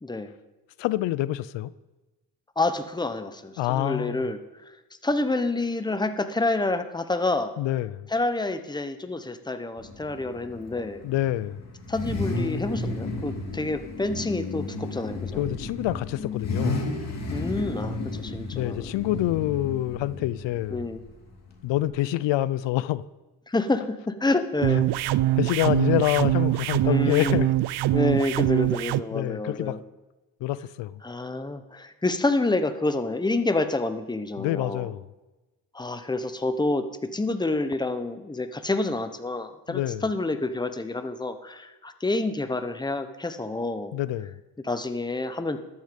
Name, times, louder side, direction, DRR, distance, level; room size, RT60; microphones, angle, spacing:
voice 1, 0.0-0.3 2.6-4.4 5.0-7.5 8.1-11.0 11.9-15.4 17.3-18.9 20.7-21.0 23.5-24.9 26.8-27.4 27.9-29.8 31.0-34.9 35.7-36.8 37.1-43.9 44.6-45.6, left 2 dB, 10° left, 0.9 m, -28 dB
voice 2, 0.8-1.7 3.6-4.2 7.6-8.1 11.0-11.6 15.4-16.9 18.5-20.8 21.6-23.0 25.1-27.5 29.1-29.8 30.4-30.9 34.4-35.0 39.7-40.0 43.9-44.4, left 15 dB, 90° left, 0.6 m, -27 dB
Car / Idling / Accelerating revving vroom, 9.8-21.9, left 2 dB, 40° left, 2.6 m, -33 dB
sound 1, 24.6-29.0, right 15 dB, 65° right, 0.5 m, -23 dB
13.5 x 9.5 x 5.2 m
cardioid pair, 95°, 42 cm